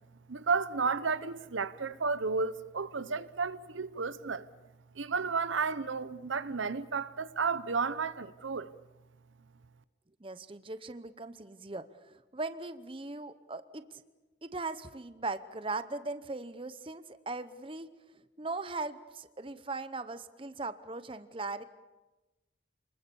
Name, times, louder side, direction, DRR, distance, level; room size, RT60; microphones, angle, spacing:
voice 1, 0.3-4.5 4.9-8.7, right 4 dB, 85° right, 0.8 m, -32 dB
voice 2, 10.2-14.0 14.4-17.9 18.4-21.6, right 3 dB, 25° right, 0.8 m, -39 dB
28.5 x 20.5 x 7.0 m
head